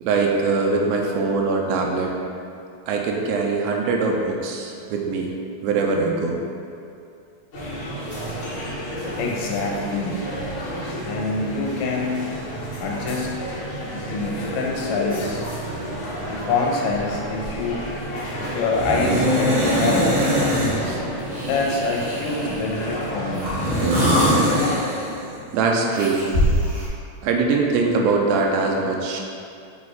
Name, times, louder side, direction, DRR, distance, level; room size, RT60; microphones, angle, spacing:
voice 1, 0.0-2.2 2.9-5.3 5.6-6.4 20.8-21.0 25.5-26.2 27.2-29.2, right 4 dB, 80° right, 0 dB, 2.3 m, -22 dB
sound 1, 7.5-24.8, equal, 50° left, 1.7 m, -31 dB
voice 2, 9.2-10.2 11.0-12.4 12.8-13.3 13.9-15.5 16.3-17.9 18.4-20.2 21.4-23.5, left 3 dB, 80° left, -1 dB, 2.5 m, -25 dB
sound 2, 17.8-17.9 18.7-20.8 21.3-22.7 23.3-25.4 25.9-26.9, equal, 55° right, 1.8 m, -22 dB
7.0 x 3.3 x 4.1 m, 2.5 s
omnidirectional pair, 4.5 m